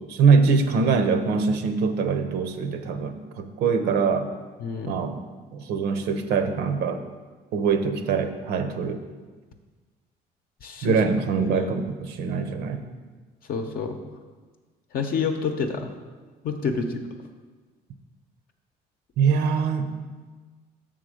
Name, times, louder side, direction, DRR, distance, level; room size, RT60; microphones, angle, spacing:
voice 1, 0.0-4.3 4.9-5.2 5.5-7.0 7.5-9.0 10.8-12.8 19.2-19.9, right 5 dB, 80° right, 8 dB, 0.7 m, -23 dB
voice 2, 4.6-5.0 10.6-11.0 11.4-11.7 13.5-14.0 14.9-15.9 16.4-17.0, left 5 dB, 60° left, 4 dB, 0.7 m, -28 dB
6.8 x 3.8 x 6.3 m, 1.4 s
cardioid pair, 110°, 17 cm